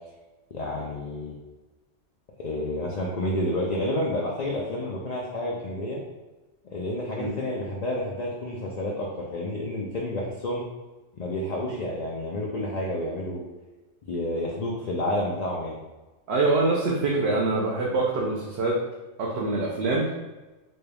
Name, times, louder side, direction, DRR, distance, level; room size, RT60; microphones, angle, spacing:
voice 1, 0.5-1.3 2.4-6.0 6.7-10.6 11.2-13.4 14.1-15.8, left 1 dB, 60° left, -3 dB, 0.4 m, -30 dB
voice 2, 16.3-18.8 19.2-20.1, right 2 dB, 65° right, -3 dB, 0.8 m, -24 dB
4.2 x 2.3 x 3.4 m, 1.1 s
omnidirectional pair, 1.3 m